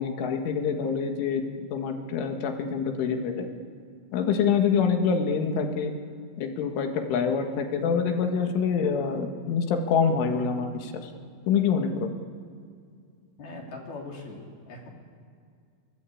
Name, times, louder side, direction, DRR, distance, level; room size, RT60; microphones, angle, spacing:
voice 1, 0.0-1.4 1.7-3.5 4.1-5.9 6.4-11.1 11.5-12.1, left 6 dB, 70° left, 4 dB, 4.2 m, -26 dB
voice 2, 13.4-14.9, left 2 dB, 50° left, -1 dB, 4.3 m, -40 dB
26.5 x 23.0 x 8.6 m, 2.2 s
omnidirectional pair, 6.0 m